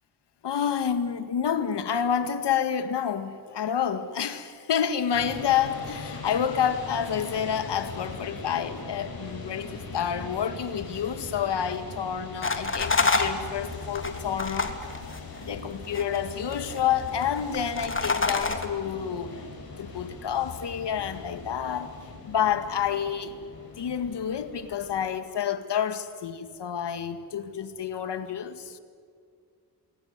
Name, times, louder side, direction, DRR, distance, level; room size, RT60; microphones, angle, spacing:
voice 1, 0.4-14.8 15.4-19.5 19.8-21.9 22.2-23.3 23.8-28.8, left 8 dB, 75° left, 2.0 m, -29 dB
sound 1, 5.1-25.1, left 3 dB, 55° left, 6.8 m, -41 dB
sound 2, 12.4-15.6 15.8-16.8 17.1-18.7, left 3 dB, 30° left, 3.1 m, -27 dB
27.0 x 22.5 x 9.6 m
supercardioid pair, 50°, 42 cm